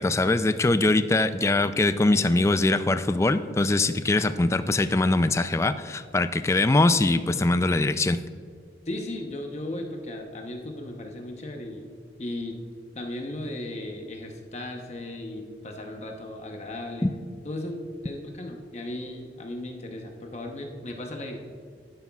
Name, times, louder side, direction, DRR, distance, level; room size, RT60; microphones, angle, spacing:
voice 1, 0.0-8.2 17.0-17.1, left 2 dB, 15° left, 11 dB, 0.3 m, -22 dB
voice 2, 8.9-11.9 12.2-12.6 12.9-17.1 17.4-21.4, left 1 dB, 40° left, 2 dB, 0.8 m, -36 dB
11.5 x 9.6 x 2.3 m, 2.1 s
head